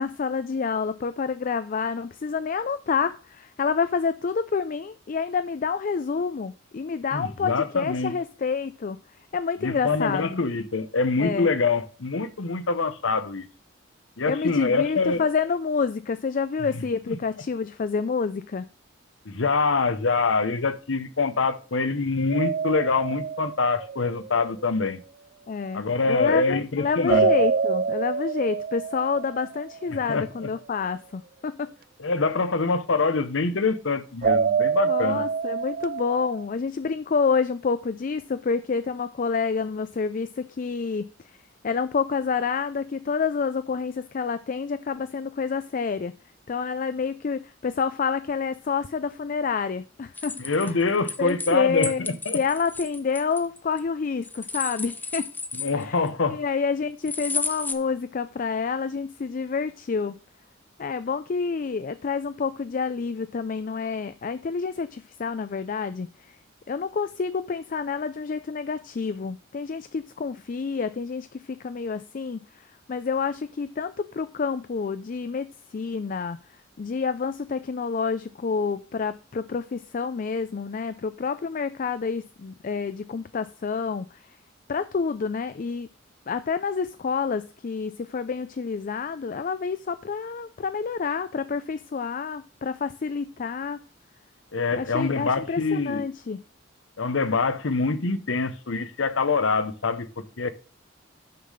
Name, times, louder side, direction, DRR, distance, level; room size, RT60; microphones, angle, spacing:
voice 1, 0.0-9.0 9.3-10.4 11.2-11.5 14.3-18.7 25.5-31.7 34.9-41.1 41.6-46.1 46.5-50.7 51.2-52.1 52.3-55.3 55.7-60.1 60.8-66.4 66.7-76.4 76.8-84.2 84.7-85.9 86.3-93.8 94.7-96.4, left 5 dB, 45° left, 0.4 m, -28 dB
voice 2, 7.1-8.1 9.6-13.5 14.2-15.2 17.1-17.2 19.2-25.0 25.7-27.3 30.1-30.5 32.0-35.2 50.4-52.4 55.5-56.4 94.5-96.0 97.0-100.5, left 4 dB, 85° left, 0.9 m, -25 dB
sound 1, 22.3-24.4 27.1-30.0 34.2-36.4, right 6 dB, 50° right, 0.3 m, -26 dB
sound 2, 50.1-51.5 51.8-53.8 54.2-56.1 57.1-57.7, left 3 dB, 10° left, 0.7 m, -32 dB
6.7 x 5.7 x 6.4 m
head